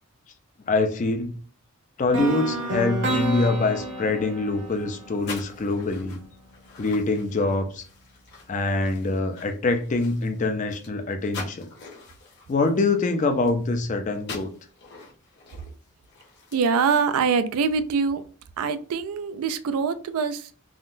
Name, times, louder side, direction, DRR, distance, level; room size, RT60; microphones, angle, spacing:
voice 1, 0.7-1.4 2.0-6.2 6.8-7.8 8.5-11.7 12.5-14.5, left 3 dB, 35° left, 0.4 m, -24 dB
sound 1, 2.1-6.1, right 1 dB, 55° right, 0.9 m, -30 dB
sound 2, 4.5-13.8 14.1-17.3, left 4 dB, 50° left, 0.9 m, -44 dB
voice 2, 16.5-18.2 18.6-20.6, right 5 dB, 85° right, 0.4 m, -24 dB
3.6 x 2.1 x 2.5 m
head